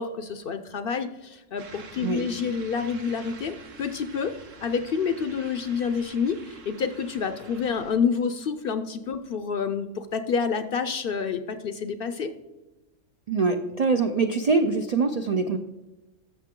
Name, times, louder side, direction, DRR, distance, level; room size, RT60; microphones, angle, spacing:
voice 1, 0.0-4.3 4.6-12.3, left 6 dB, 60° left, 10 dB, 0.6 m, -28 dB
sound 1, 1.6-8.0, right 4 dB, 75° right, 1.5 m, -47 dB
voice 2, 13.3-15.6, right 4 dB, 60° right, 7 dB, 0.4 m, -23 dB
13.5 x 6.7 x 3.7 m, 1.1 s
omnidirectional pair, 1.3 m